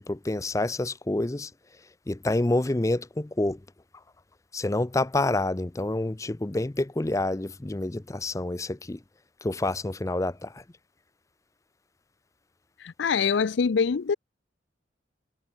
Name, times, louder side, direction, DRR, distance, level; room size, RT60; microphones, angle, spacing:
voice 1, 0.0-1.5 2.1-3.6 4.5-9.0 9.4-10.6, left 2 dB, 15° left, 0.5 m, -28 dB
voice 2, 12.8-14.2, left 5 dB, 75° left, 0.5 m, -24 dB
head